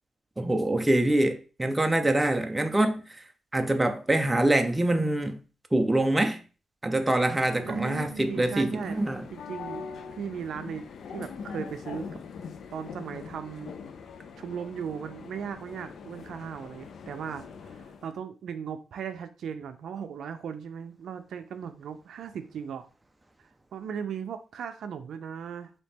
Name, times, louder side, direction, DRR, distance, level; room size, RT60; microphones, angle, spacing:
voice 1, 0.4-3.0 3.5-5.4 5.7-6.4 6.8-9.3, right 1 dB, 10° right, 0.5 m, -25 dB
sound 1, 7.3-18.1, left 5 dB, 65° left, 0.4 m, -43 dB
voice 2, 7.6-9.0 9.3-12.2 12.7-13.8 14.4-22.9 23.7-25.7, right 7 dB, 75° right, 0.4 m, -37 dB
4.1 x 2.8 x 3.5 m
cardioid pair, 125°, 0 cm